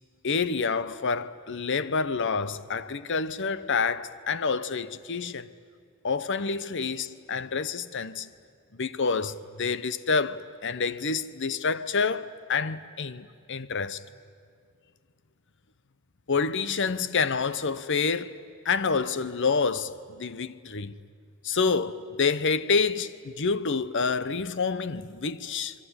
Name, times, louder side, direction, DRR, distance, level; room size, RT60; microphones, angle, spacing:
voice 1, 0.2-5.5 6.0-8.3 8.7-14.0 16.3-18.3 18.6-20.9 21.4-25.7, left 5 dB, 55° left, 0.9 m, -28 dB
28.0 x 21.5 x 9.7 m
head